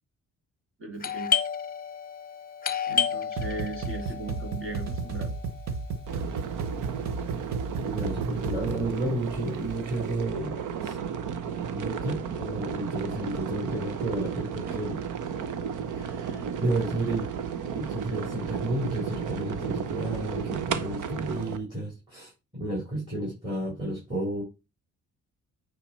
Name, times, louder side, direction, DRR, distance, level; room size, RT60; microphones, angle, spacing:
voice 1, 0.8-1.3 2.9-5.3, right 3 dB, 45° right, 4 dB, 2.7 m, -37 dB
Doorbell, 1.0-6.5, left 7 dB, 30° left, 0.8 m, -32 dB
sound 1, 3.4-8.9, right 4 dB, 65° right, 1.1 m, -34 dB
sound 2, 6.1-21.6, right 7 dB, 80° right, 1.0 m, -33 dB
voice 2, 7.8-11.0 11.6-15.0 15.9-17.3 17.7-24.4, right 1 dB, 15° right, -1 dB, 3.6 m, -32 dB
9.2 x 3.9 x 4.4 m, 0.27 s
cardioid pair, 90°, 30 cm